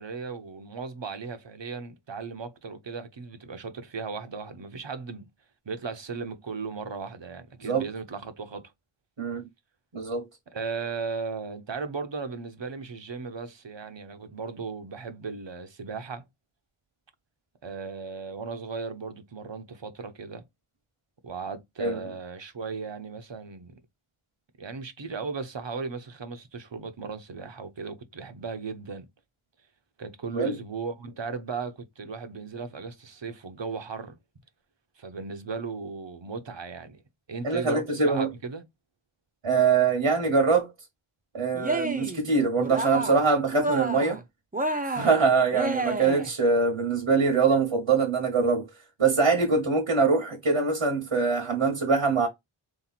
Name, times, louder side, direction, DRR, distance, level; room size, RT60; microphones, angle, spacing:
voice 1, 0.0-5.3 5.7-8.7 10.5-16.2 17.6-20.4 21.2-23.8 24.6-29.1 30.0-34.2 35.0-37.0 37.3-38.6, right 4 dB, 60° right, 0.8 m, -36 dB
voice 2, 9.2-9.5 9.9-10.2 21.8-22.0 30.3-30.6 37.4-38.3 39.4-40.7 41.3-44.2 44.8-48.7 49.0-52.3, right 4 dB, 75° right, 1.2 m, -23 dB
Cheering, 41.5-42.2 42.6-43.3 43.5-44.2 44.5-46.3, right 2 dB, 15° right, 0.6 m, -30 dB
3.2 x 3.0 x 4.1 m
wide cardioid pair, 45°, 50 cm